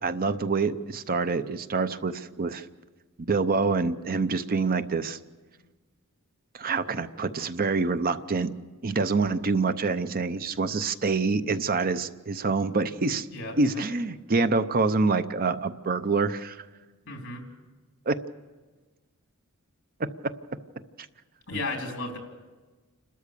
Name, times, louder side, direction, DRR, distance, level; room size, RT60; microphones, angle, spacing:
voice 1, 0.0-2.7 3.3-5.2 6.5-8.5 8.8-13.3 13.6-16.6 18.1-18.2 20.0-20.1, right 4 dB, 40° right, 12 dB, 0.7 m, -26 dB
voice 2, 13.3-13.8 17.1-17.5 21.5-22.2, left 2 dB, 60° left, 2 dB, 3.9 m, -34 dB
29.5 x 13.0 x 6.8 m, 1.3 s
head